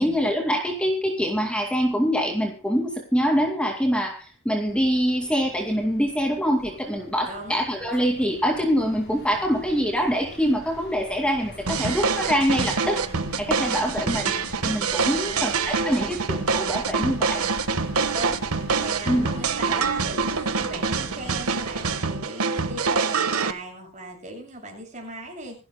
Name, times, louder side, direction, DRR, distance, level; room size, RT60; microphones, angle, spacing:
voice 1, 0.0-13.0 13.4-14.3 14.6-17.5 19.1-19.3, equal, 5° left, 1 dB, 2.3 m, -24 dB
sound 1, 4.7-22.0, left 1 dB, 45° left, 5.8 m, -43 dB
voice 2, 7.3-7.6 13.8-13.9 15.1-15.6 18.1-18.4 18.8-25.6, right 2 dB, 35° right, 2 dB, 6.9 m, -37 dB
sound 2, 11.7-23.5, right 5 dB, 80° right, 1.4 m, -26 dB
26.5 x 12.0 x 2.2 m, 0.33 s
head